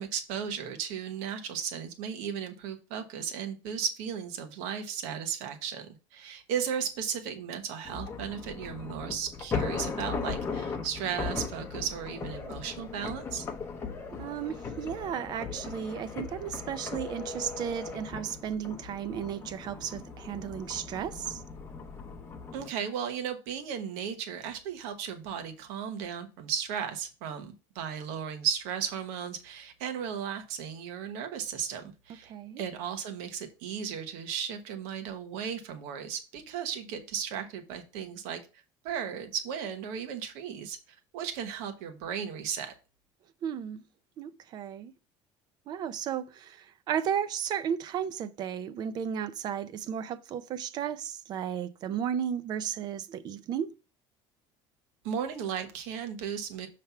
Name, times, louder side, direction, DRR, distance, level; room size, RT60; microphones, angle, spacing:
voice 1, 0.0-13.4 22.5-32.3 32.6-38.4 38.8-40.8 41.1-42.7 55.0-56.7, right 8 dB, 85° right, 1.1 m, -35 dB
sound 1, 7.8-22.7, left 5 dB, 20° left, 0.7 m, -38 dB
voice 2, 14.2-21.4 32.3-32.6 43.4-43.8 44.2-44.9 45.7-53.7, right 8 dB, 40° right, 0.5 m, -34 dB
7.0 x 3.3 x 5.6 m
cardioid pair, 175°, 11 cm